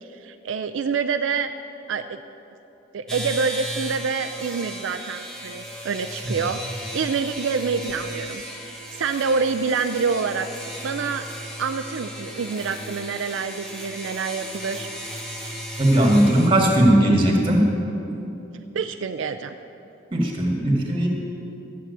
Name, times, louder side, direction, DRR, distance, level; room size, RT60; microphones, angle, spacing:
voice 1, 0.2-1.5 1.9-2.2 2.9-6.6 6.9-10.5 10.8-11.3 11.6-14.9 18.7-19.5, right 5 dB, 80° right, 7 dB, 0.4 m, -26 dB
sound 1, 3.1-16.5, right 1 dB, 5° left, 1.4 m, -35 dB
voice 2, 15.8-17.7 20.1-21.1, right 1 dB, 25° right, 0 dB, 2.0 m, -18 dB
12.5 x 7.4 x 8.1 m, 2.9 s
head